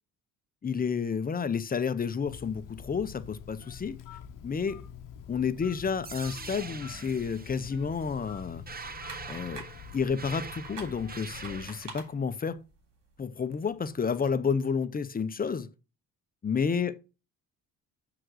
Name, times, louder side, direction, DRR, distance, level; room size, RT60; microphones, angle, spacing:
voice 1, 0.6-4.0 4.4-4.8 5.3-8.6 9.3-9.6 9.9-12.6 13.2-15.7 16.4-16.9, left 6 dB, 25° left, 0.7 m, -30 dB
Telephone, 2.2-11.9, left 8 dB, 65° left, 0.9 m, -46 dB
sound 1, 6.0-12.0, right 5 dB, 25° right, 0.8 m, -44 dB
sound 2, 8.9-14.3, right 3 dB, 65° right, 3.8 m, -49 dB
6.5 x 3.8 x 6.3 m
cardioid pair, 80°, 35 cm